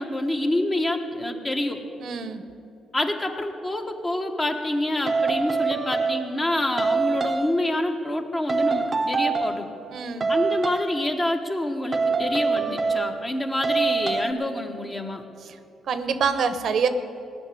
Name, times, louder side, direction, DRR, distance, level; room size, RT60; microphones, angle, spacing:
voice 1, 0.0-1.8 2.9-9.7 10.3-15.2, left 1 dB, 20° left, 4 dB, 1.3 m, -27 dB
voice 2, 2.0-2.4 9.9-10.3 15.5-15.6 15.9-16.9, right 6 dB, 65° right, 11 dB, 0.9 m, -25 dB
sound 1, 5.1-6.5 6.8-7.7 8.5-9.7 10.2-10.9 11.9-13.3 13.6-14.3, right 4 dB, 30° right, 0.8 m, -25 dB
17.5 x 6.1 x 9.8 m, 2.7 s
cardioid pair, 90°, 0 cm